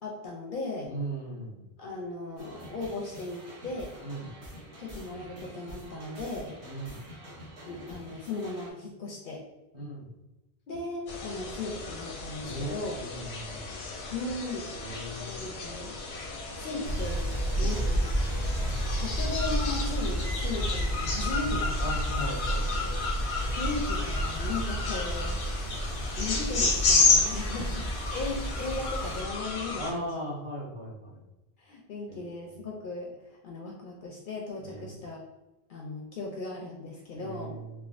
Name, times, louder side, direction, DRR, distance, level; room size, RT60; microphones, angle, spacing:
voice 1, 0.0-0.9 1.8-3.9 4.8-6.5 7.7-9.4 10.7-13.0 14.1-16.0 16.5-18.1 19.0-22.3 23.5-25.4 26.2-30.3 31.6-35.2 35.7-37.6, left 3 dB, 60° left, -2 dB, 0.6 m, -37 dB
voice 2, 0.8-1.6 4.0-4.3 6.6-7.0 9.7-10.0 12.4-13.8 14.8-15.3 17.6-17.8 21.8-23.1 27.4-27.6 29.8-31.1 32.1-32.4 34.6-34.9 37.1-37.7, right 1 dB, 30° right, -7 dB, 0.8 m, -38 dB
sound 1, 2.4-8.7, equal, 85° right, 1.2 m, -47 dB
sound 2, 11.1-29.9, left 4 dB, 85° left, 0.9 m, -32 dB
sound 3, 16.8-29.2, right 1 dB, 65° right, 0.7 m, -31 dB
3.3 x 2.2 x 2.4 m, 1.0 s
omnidirectional pair, 1.1 m